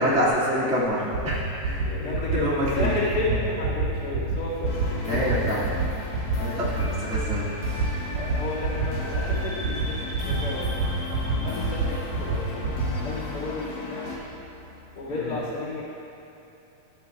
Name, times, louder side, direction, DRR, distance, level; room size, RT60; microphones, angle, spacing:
voice 1, 0.0-2.9 4.9-5.9 6.3-7.4 15.1-15.3, equal, 5° right, -9 dB, 0.9 m, -27 dB
sound 1, 1.1-1.4 1.6-1.8 2.1-2.3 2.6-2.8 3.1-3.3 3.6-3.9 4.1-4.4 4.6-4.8 5.1-5.3 5.6-5.8 6.1-6.3 6.6-6.9 7.1-7.3 7.6-7.9 8.1-8.3 8.6-8.8 9.1-9.4 9.6-9.8 10.1-10.3 10.6-10.8 11.1-11.3 11.6-11.8 12.1-12.3 12.6-12.9, right 6 dB, 65° right, 1.6 m, -26 dB
voice 2, 1.8-5.3 8.2-10.7 11.1-14.1 15.0-15.8, left 2 dB, 35° left, -11 dB, 2.4 m, -32 dB
sound 2, 4.6-14.2, left 3 dB, 75° left, 1.1 m, -36 dB
13.5 x 8.2 x 2.3 m, 3.0 s
omnidirectional pair, 3.6 m